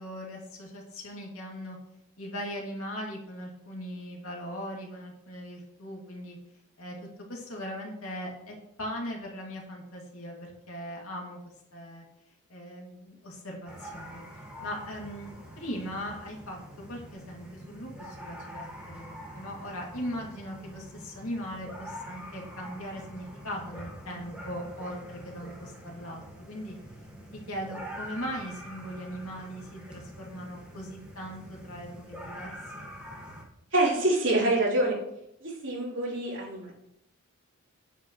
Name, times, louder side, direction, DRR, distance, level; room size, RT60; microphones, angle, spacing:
voice 1, 0.0-1.8 2.2-6.4 6.8-7.0 7.3-12.0 12.5-14.2 14.6-26.7 27.3-32.5 32.8-32.9, equal, 75° left, -1 dB, 2.5 m, -39 dB
sound 1, 13.7-33.4, equal, 5° right, 1.6 m, -45 dB
voice 2, 33.7-35.0 35.4-36.7, right 1 dB, 55° right, -6 dB, 3.9 m, -26 dB
9.3 x 9.2 x 3.2 m, 0.78 s
head